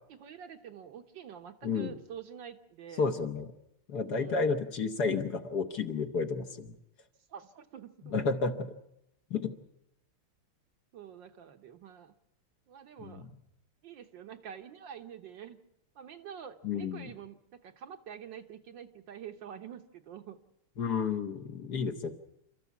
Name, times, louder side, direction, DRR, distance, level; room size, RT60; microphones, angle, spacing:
voice 1, 0.1-3.1 4.1-4.5 7.3-8.1 10.9-12.1 12.7-13.3 13.8-15.6 15.9-20.4, right 8 dB, 65° right, 7 dB, 1.6 m, -47 dB
voice 2, 1.6-1.9 3.0-3.5 3.9-6.8 8.1-8.7 9.3-9.5 13.0-13.3 16.6-17.1 20.8-22.1, left 4 dB, 55° left, 6 dB, 1.6 m, -31 dB
29.0 x 13.5 x 8.4 m, 0.83 s
omnidirectional pair, 2.4 m